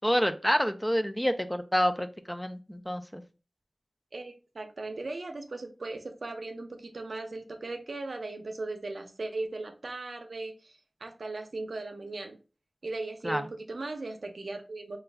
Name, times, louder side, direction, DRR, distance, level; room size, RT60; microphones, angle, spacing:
voice 1, 0.0-3.2 13.2-13.5, equal, 10° left, 8 dB, 0.4 m, -28 dB
voice 2, 4.1-12.4 12.8-15.0, right 2 dB, 80° right, 5 dB, 0.6 m, -38 dB
3.9 x 2.3 x 3.3 m, 0.33 s
wide cardioid pair, 60°, 0 cm